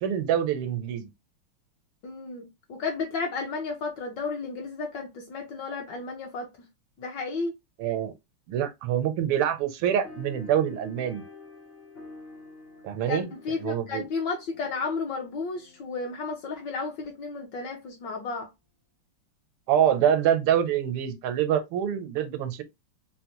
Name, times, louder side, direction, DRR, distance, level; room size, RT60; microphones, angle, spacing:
voice 1, 0.0-1.1 7.8-8.1 8.5-11.2 12.8-13.3 13.6-14.0 19.7-22.6, right 9 dB, 85° right, 1.5 m, -25 dB
voice 2, 2.0-6.5 7.0-7.5 13.1-18.5, left 4 dB, 65° left, 1.2 m, -33 dB
sound 1, 10.0-16.9, left 3 dB, 85° left, 0.5 m, -48 dB
4.0 x 2.1 x 2.8 m
omnidirectional pair, 2.4 m